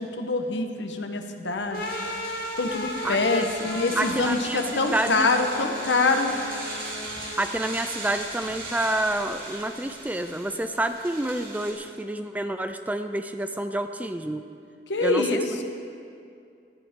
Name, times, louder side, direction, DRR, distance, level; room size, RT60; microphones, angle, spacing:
voice 1, 0.0-1.8 2.6-6.3 14.9-15.6, left 3 dB, 75° left, 5 dB, 1.1 m, -25 dB
sound 1, 1.7-7.6, left 2 dB, 55° left, 1.2 m, -36 dB
sound 2, 1.7-11.7, right 2 dB, 50° right, 3.3 m, -38 dB
voice 2, 3.0-3.5 4.0-5.3 7.4-14.4 15.0-15.4, right 1 dB, 10° right, 8 dB, 0.4 m, -28 dB
18.0 x 11.5 x 3.7 m, 2.4 s
head